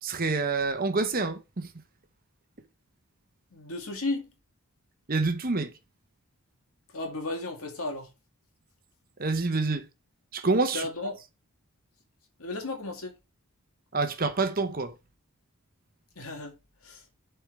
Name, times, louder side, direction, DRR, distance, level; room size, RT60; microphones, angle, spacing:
voice 1, 0.0-1.7 5.1-5.7 9.2-9.9 10.3-10.9 13.9-14.9, right 3 dB, 40° right, 0.9 m, -27 dB
voice 2, 3.5-4.3 6.9-8.1 10.7-11.2 12.4-13.1 16.2-16.6 16.8-17.0, left 2 dB, 75° left, 2.2 m, -34 dB
11.5 x 4.5 x 3.3 m
head